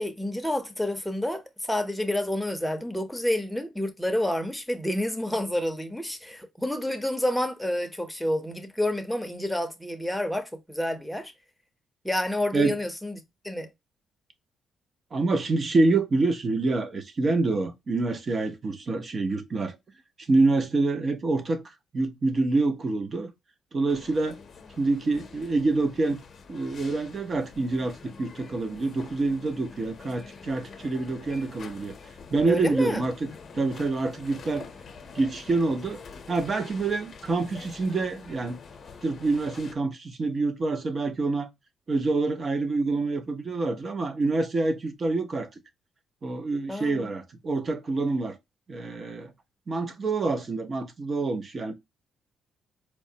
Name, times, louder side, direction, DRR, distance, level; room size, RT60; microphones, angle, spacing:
voice 1, 0.0-11.3 12.0-13.2 13.4-13.7 32.5-33.0 46.7-47.1, left 1 dB, 5° left, 0.7 m, -29 dB
voice 2, 15.1-19.8 20.3-21.6 21.9-23.3 23.7-24.4 24.8-26.2 26.5-31.9 32.3-33.3 33.5-34.7 35.1-36.0 36.3-38.6 39.0-41.5 41.9-45.5 46.2-48.4 48.7-49.3 49.7-51.7, right 3 dB, 40° right, 0.7 m, -26 dB
sound 1, 23.9-39.7, left 5 dB, 50° left, 0.7 m, -46 dB
4.4 x 2.1 x 2.7 m
cardioid pair, 90°, 0 cm